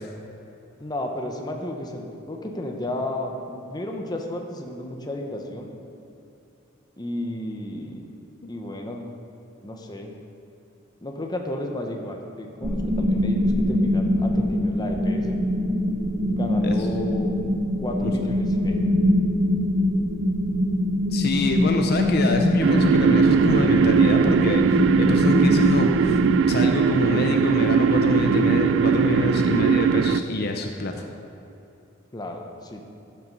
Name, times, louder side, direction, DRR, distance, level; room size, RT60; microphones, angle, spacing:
voice 1, 0.8-5.7 7.0-8.1 8.5-9.0 9.6-10.1 11.0-15.4 16.3-17.4 17.8-18.9 32.1-32.9, left 1 dB, 20° left, 2 dB, 0.9 m, -33 dB
sound 1, 12.6-26.3, left 1 dB, 45° right, 1.4 m, -23 dB
voice 2, 21.1-26.2 26.5-30.9, left 2 dB, 55° left, 4 dB, 0.7 m, -26 dB
sound 2, 22.6-30.2, right 6 dB, 65° right, 0.3 m, -19 dB
12.5 x 5.8 x 5.3 m, 2.8 s
head